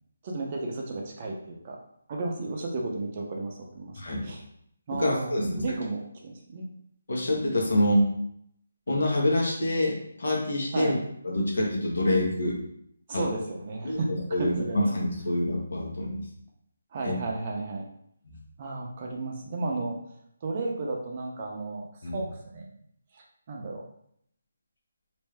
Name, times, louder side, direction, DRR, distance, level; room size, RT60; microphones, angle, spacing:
voice 1, 0.2-1.8 2.1-4.4 4.9-6.7 10.7-11.0 13.1-14.1 14.4-14.9 16.9-17.8 18.6-20.0 20.4-22.7 23.1-23.8, right 2 dB, 30° right, 0 dB, 0.6 m, -33 dB
voice 2, 4.0-4.3 4.9-5.6 7.1-8.1 8.9-10.9 11.2-12.6 13.1-13.2 13.8-16.2 17.0-17.1 18.3-18.4 22.0-22.2, left 1 dB, 70° left, -2 dB, 1.2 m, -26 dB
3.2 x 2.6 x 3.3 m, 0.70 s
hypercardioid pair, 170°, 0 cm